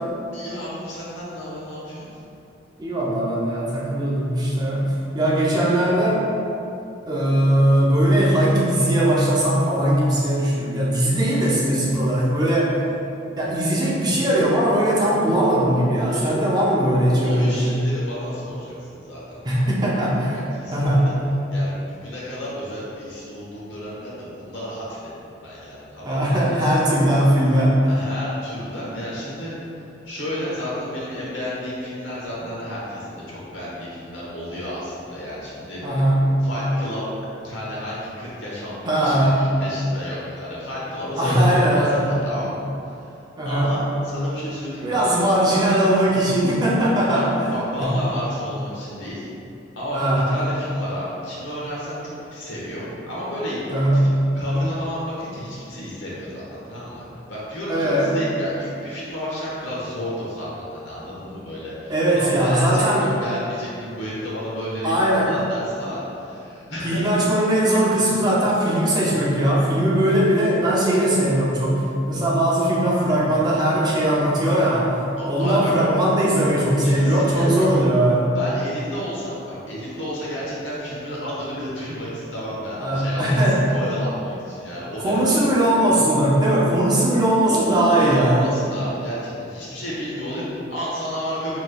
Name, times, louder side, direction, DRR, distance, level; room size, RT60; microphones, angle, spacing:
voice 1, 0.3-2.1 16.1-16.4 17.2-19.8 20.3-21.2 21.5-26.4 27.8-35.8 36.4-37.1 37.4-43.0 43.4-45.0 47.1-49.3 49.8-50.0 50.3-53.8 54.3-57.0 57.3-67.1 75.2-75.7 76.8-77.7 78.3-83.4 83.7-85.4 87.4-91.6, equal, 75° left, -7 dB, 1.1 m, -31 dB
voice 2, 2.8-6.2 7.1-12.8 13.4-17.8 19.4-20.5 20.7-21.1 26.0-27.9 35.8-36.3 38.8-39.5 41.2-42.1 43.4-43.7 44.8-47.3 47.8-48.0 49.9-50.3 53.7-54.1 57.7-58.2 61.9-63.0 64.8-65.3 66.8-78.4 82.8-83.6 85.0-88.5, right 1 dB, 20° right, -5 dB, 0.5 m, -19 dB
4.9 x 3.0 x 2.2 m, 2.8 s
head